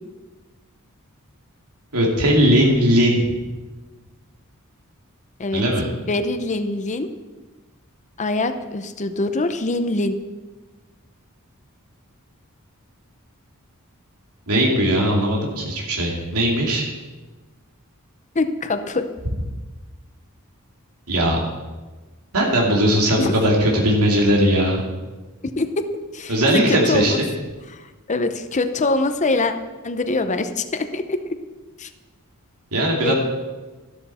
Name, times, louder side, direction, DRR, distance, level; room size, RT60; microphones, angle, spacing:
voice 1, 1.9-3.4 5.5-5.9 14.5-16.8 21.1-21.4 22.3-24.8 26.3-27.3 32.7-33.1, equal, 80° right, -1 dB, 2.5 m, -18 dB
voice 2, 6.0-7.1 8.2-10.1 18.3-19.1 23.2-23.3 25.4-25.9 26.1-27.2 27.7-27.8 28.1-29.5 29.8-31.2 31.8-31.9 33.0-33.1, left 2 dB, 35° left, 9 dB, 0.8 m, -23 dB
13.0 x 12.5 x 4.3 m, 1.2 s
head